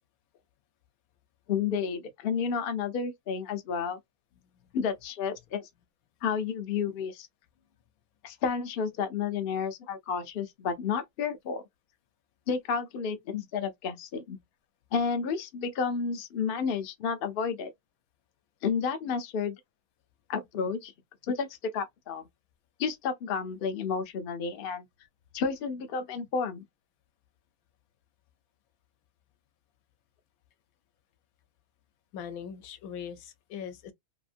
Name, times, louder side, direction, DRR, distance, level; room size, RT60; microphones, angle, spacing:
voice 1, 1.5-4.0 4.7-5.7 6.2-7.3 8.2-11.6 12.5-14.4 14.9-17.7 18.6-19.6 20.3-20.9 21.3-22.2 22.8-24.8 25.3-26.6, left 6 dB, 55° left, 0.6 m, -31 dB
voice 2, 32.1-33.9, left 8 dB, 80° left, 1.0 m, -40 dB
2.8 x 2.6 x 2.4 m
omnidirectional pair, 1.5 m